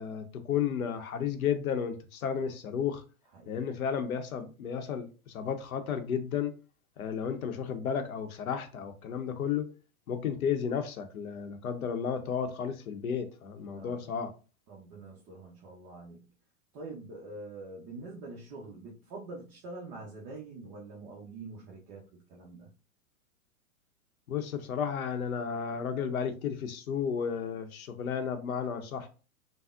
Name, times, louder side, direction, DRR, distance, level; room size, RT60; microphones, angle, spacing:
voice 1, 0.0-3.0 3.5-6.5 7.0-9.7 10.1-14.3 24.3-29.1, left 7 dB, 75° left, 0.7 m, -33 dB
voice 2, 3.3-3.6 13.6-14.1 14.7-16.3 16.7-22.7, right 3 dB, 25° right, 0.5 m, -45 dB
3.4 x 2.0 x 2.4 m
hypercardioid pair, 120°, 43 cm